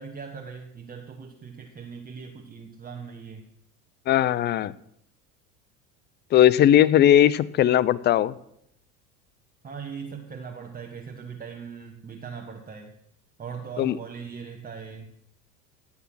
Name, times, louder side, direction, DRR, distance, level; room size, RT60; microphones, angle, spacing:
voice 1, 0.0-3.5 9.6-13.0 13.4-15.1, right 6 dB, 20° right, 3 dB, 1.2 m, -40 dB
voice 2, 4.1-4.7 6.3-8.3 13.8-14.0, left 11 dB, 25° left, 20 dB, 0.4 m, -18 dB
16.5 x 7.1 x 6.0 m, 0.76 s
hypercardioid pair, 80°, 47 cm